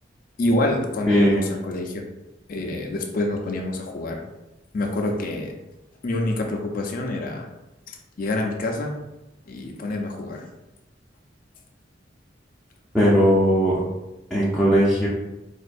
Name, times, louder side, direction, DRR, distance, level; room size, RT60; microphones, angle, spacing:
voice 1, 0.4-2.0 2.5-4.2 4.7-5.5 6.0-7.5 7.9-9.0 9.5-10.5, left 2 dB, 50° left, 2 dB, 0.5 m, -26 dB
voice 2, 1.1-1.4 12.9-13.8 14.3-15.1, equal, ahead, -9 dB, 0.5 m, -18 dB
4.3 x 2.4 x 2.5 m, 0.99 s
head